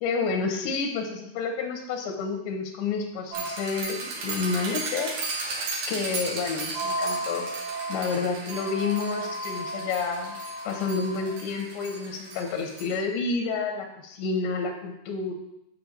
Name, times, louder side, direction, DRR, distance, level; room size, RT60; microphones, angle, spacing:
voice 1, 0.0-5.1 5.9-7.5 7.9-10.3 10.6-15.3, left 4 dB, 90° left, 3 dB, 3.3 m, -29 dB
sound 1, 3.3-12.9, right 2 dB, 55° right, 2.6 m, -33 dB
8.7 x 5.4 x 7.3 m, 0.82 s
omnidirectional pair, 4.9 m